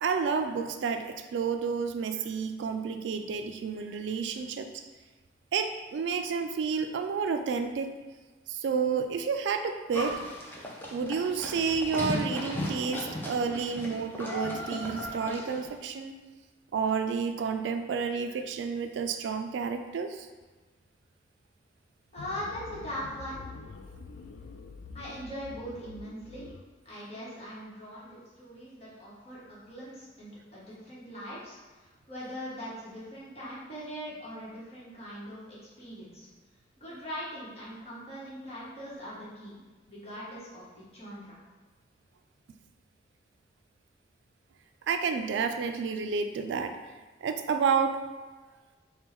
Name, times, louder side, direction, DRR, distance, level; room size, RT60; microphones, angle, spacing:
voice 1, 0.0-4.8 5.5-7.9 8.5-10.2 10.9-16.1 16.7-20.3 44.9-46.7 47.2-48.0, right 5 dB, 80° right, 7 dB, 0.3 m, -30 dB
Livestock farm animals working animals, 9.9-15.7, left 1 dB, 10° left, 0.5 m, -36 dB
voice 2, 22.1-23.4 24.9-26.5 26.8-36.3 36.8-39.6 39.9-41.4, equal, 35° left, -8 dB, 1.2 m, -41 dB
sound 1, 22.2-26.6, left 4 dB, 90° left, 0.3 m, -46 dB
3.5 x 2.2 x 4.4 m, 1.3 s
head